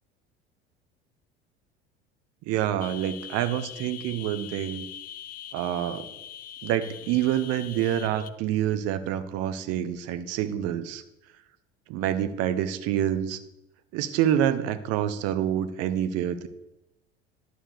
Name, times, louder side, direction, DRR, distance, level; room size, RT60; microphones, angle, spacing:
voice 1, 2.5-4.9 5.5-6.1 6.6-11.0 11.9-13.4 13.9-16.5, right 11 dB, 50° right, 11 dB, 0.9 m, -27 dB
sound 1, 2.8-8.3, left 10 dB, 25° left, 0.6 m, -42 dB
11.0 x 4.6 x 6.6 m, 0.89 s
figure-of-eight pair, 70°, 32 cm